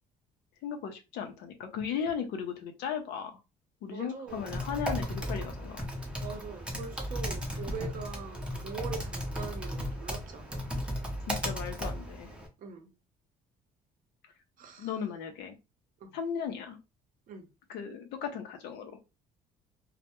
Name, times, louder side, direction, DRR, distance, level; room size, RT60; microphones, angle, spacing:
voice 1, 0.6-3.4 3.8-5.9 11.3-12.3 14.8-15.5 16.1-16.8 17.7-18.9, left 7 dB, 80° left, 0.5 m, -36 dB
voice 2, 3.9-4.5 6.2-10.6 12.6-12.9 14.6-14.9 16.0-16.1 17.3-17.4, right 6 dB, 55° right, 0.7 m, -42 dB
Typing, 4.3-12.5, equal, 5° right, 0.6 m, -35 dB
2.1 x 2.0 x 2.8 m
cardioid pair, 110°, 17 cm